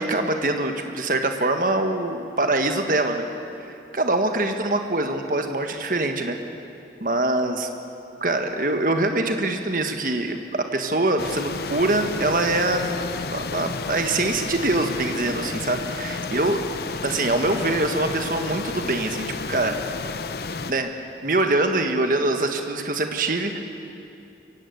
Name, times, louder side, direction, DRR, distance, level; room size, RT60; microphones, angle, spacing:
voice 1, 0.0-3.3 3.6-6.4 7.0-7.7 8.2-16.6 17.0-19.8 20.7-20.9 21.2-23.6, right 2 dB, 50° right, 5 dB, 1.5 m, -24 dB
sound 1, 11.2-20.7, left 4 dB, 60° left, 0.7 m, -31 dB
23.0 x 17.5 x 8.1 m, 2.6 s
head